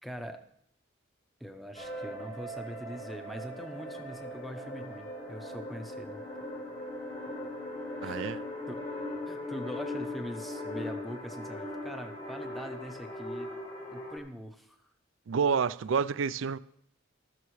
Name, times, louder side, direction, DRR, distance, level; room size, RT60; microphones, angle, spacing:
voice 1, 0.0-0.4 1.4-6.2 8.0-8.8 9.3-13.5 13.9-14.8, equal, ahead, 0.8 m, -42 dB
Someones in your house, 1.7-14.2, left 1 dB, 35° left, 1.8 m, -39 dB
voice 2, 8.0-8.4 15.3-16.6, right 6 dB, 75° right, 0.4 m, -28 dB
14.0 x 13.0 x 3.2 m
head